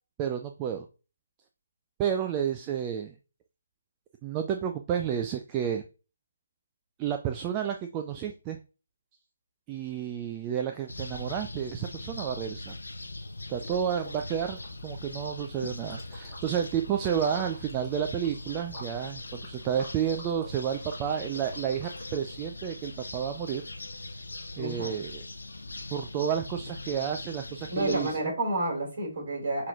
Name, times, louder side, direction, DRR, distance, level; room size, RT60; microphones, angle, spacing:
voice 1, 0.2-0.9 2.0-3.1 4.2-5.8 7.0-8.6 9.7-12.7 13.5-23.6 24.6-25.2 25.9-28.3, right 9 dB, 20° right, 5 dB, 0.3 m, -31 dB
sound 1, 10.9-28.1, left 2 dB, 70° left, 0.6 m, -41 dB
Liquid, 13.6-14.2 14.5-22.5, equal, ahead, 1.7 m, -49 dB
voice 2, 24.6-24.9 27.7-29.7, right 1 dB, 40° right, 0 dB, 2.4 m, -30 dB
5.6 x 3.1 x 2.4 m, 0.32 s
figure-of-eight pair, 145°, 0 cm